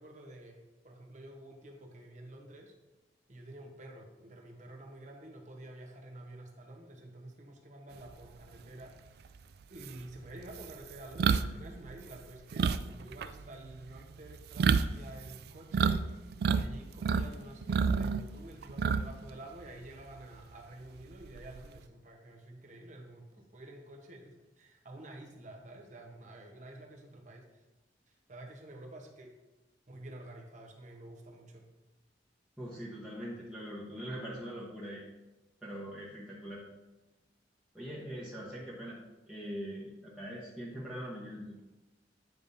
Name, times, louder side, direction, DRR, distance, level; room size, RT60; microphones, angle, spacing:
voice 1, 0.0-2.7 3.3-9.3 9.7-27.6 28.1-29.3 29.9-31.7, right 1 dB, 45° right, 1 dB, 1.1 m, -49 dB
sound 1, 9.3-9.4 9.8-16.0 16.3-17.3 17.6-19.3 19.6-19.8 21.2-21.8, right 5 dB, 60° right, 0.3 m, -29 dB
voice 2, 32.6-35.1 35.6-36.6 37.7-41.6, equal, 5° right, -9 dB, 1.1 m, -42 dB
9.3 x 5.2 x 2.7 m, 1.1 s
head